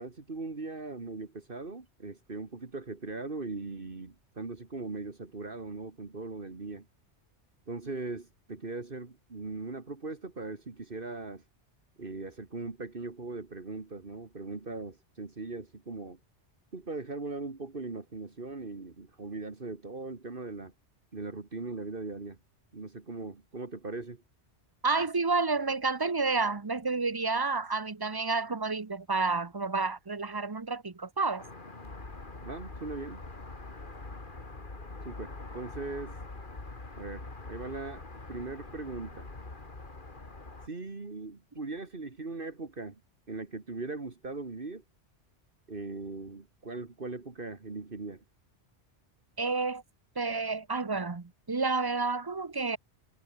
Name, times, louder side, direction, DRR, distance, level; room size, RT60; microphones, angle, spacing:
voice 1, 0.0-6.9 7.7-11.4 12.0-16.2 16.7-20.7 21.1-22.4 22.7-24.2 32.4-33.2 35.0-36.2 37.0-38.0 38.3-39.3 40.7-43.0 43.3-44.8 45.7-48.2, right 3 dB, 50° right, 2.3 m, -39 dB
voice 2, 24.8-31.4 49.4-49.8 50.2-52.8, right 3 dB, 25° right, 0.8 m, -30 dB
sound 1, 31.4-40.7, left 3 dB, 45° left, 2.8 m, -44 dB
omnidirectional pair, 1.2 m